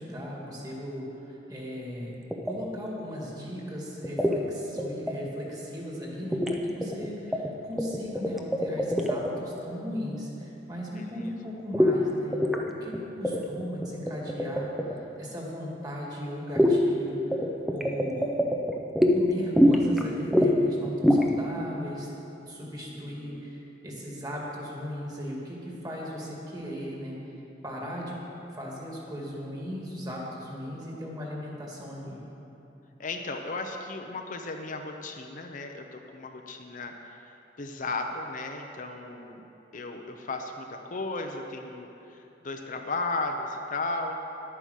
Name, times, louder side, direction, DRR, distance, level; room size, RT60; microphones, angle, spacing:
voice 1, 0.0-2.2 2.4-12.4 12.8-14.7 15.2-17.2 17.7-18.3 19.1-22.1 22.5-27.2 27.6-28.1 28.5-32.2, equal, 20° right, -3 dB, 2.2 m, -37 dB
sound 1, 2.3-2.5 4.0-4.4 4.8-5.1 6.3-6.5 6.8-7.5 7.8-9.4 11.7-11.9 12.3-12.6 12.9-13.0 13.2-15.0 16.6-16.8 17.3-19.1 19.5-20.0 20.3-20.5 20.8-21.2, equal, ahead, 0.7 m, -23 dB
voice 2, 7.1-7.4 10.9-11.3 22.9-23.5 30.7-31.0 33.0-36.9 37.6-39.5 39.7-42.2 42.4-44.2, left 3 dB, 45° left, 4 dB, 0.7 m, -35 dB
11.0 x 9.1 x 6.5 m, 3.0 s
head